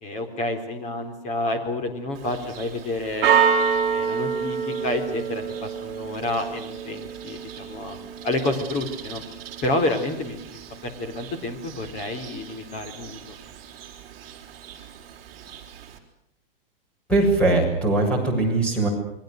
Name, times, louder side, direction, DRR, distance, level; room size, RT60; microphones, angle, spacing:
voice 1, 0.0-3.3 3.9-9.2 9.6-13.4, left 1 dB, 25° left, 6 dB, 4.1 m, -29 dB
Church bell, 2.2-16.0, right 7 dB, 30° right, 4.4 m, -29 dB
voice 2, 17.1-18.9, right 2 dB, 5° left, 0 dB, 7.0 m, -20 dB
28.5 x 23.0 x 6.7 m, 0.77 s
supercardioid pair, 165°, 29 cm